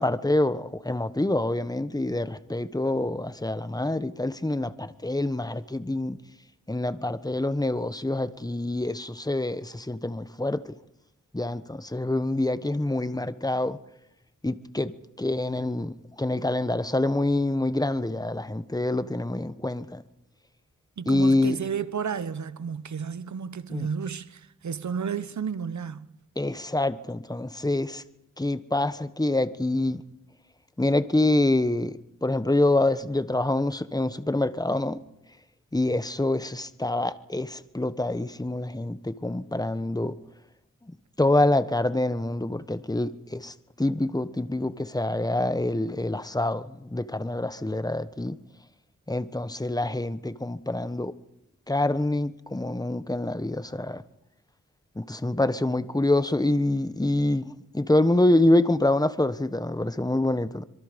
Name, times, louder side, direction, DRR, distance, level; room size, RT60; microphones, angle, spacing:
voice 1, 0.0-6.2 6.7-10.7 11.3-13.8 14.4-14.9 15.2-20.0 21.1-21.6 23.7-23.9 26.4-28.0 28.4-30.0 30.8-35.0 35.7-40.1 41.2-48.4 49.1-51.1 51.7-54.0 55.0-60.6, left 2 dB, 10° left, 1.3 m, -26 dB
voice 2, 21.0-26.1, right 6 dB, 65° right, 1.1 m, -32 dB
25.5 x 23.0 x 5.3 m
cardioid pair, 55°, 31 cm